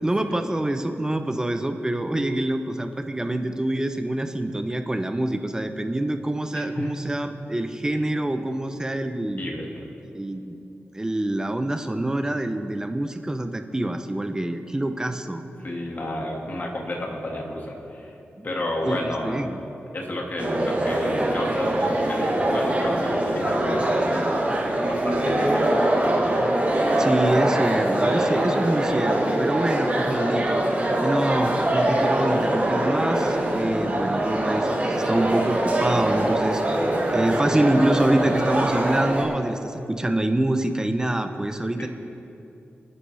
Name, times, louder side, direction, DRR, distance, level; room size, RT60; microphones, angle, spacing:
voice 1, 0.0-9.4 10.1-10.5 10.9-15.4 18.4-18.5 18.8-19.6 27.0-30.6 31.0-41.9, right 1 dB, 15° right, 7 dB, 0.8 m, -26 dB
voice 2, 6.5-6.9 9.4-9.7 15.6-18.1 18.4-19.4 19.9-24.2 24.9-26.2 41.8-41.9, left 1 dB, 45° left, -1 dB, 2.2 m, -31 dB
sound 1, 20.4-39.2, right 1 dB, 30° right, 3.6 m, -23 dB
28.0 x 9.9 x 3.5 m, 2.8 s
wide cardioid pair, 115°, 4 cm